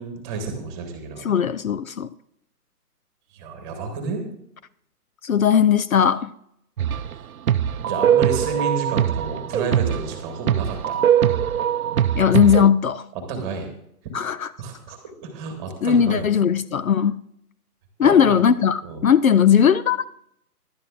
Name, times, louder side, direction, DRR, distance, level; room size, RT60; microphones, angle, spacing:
voice 1, 0.0-1.2 3.3-4.2 7.8-11.0 13.3-13.7 14.6-16.3 18.0-18.4 18.8-19.0, right 4 dB, 15° right, 1.4 m, -31 dB
voice 2, 1.2-2.1 5.2-6.3 12.2-13.1 14.1-14.5 15.8-17.2 18.0-20.0, left 8 dB, 60° left, 0.7 m, -18 dB
sound 1, 6.8-7.2 7.5-12.7, right 10 dB, 65° right, 0.6 m, -21 dB
18.5 x 11.5 x 2.4 m
hypercardioid pair, 155°, 47 cm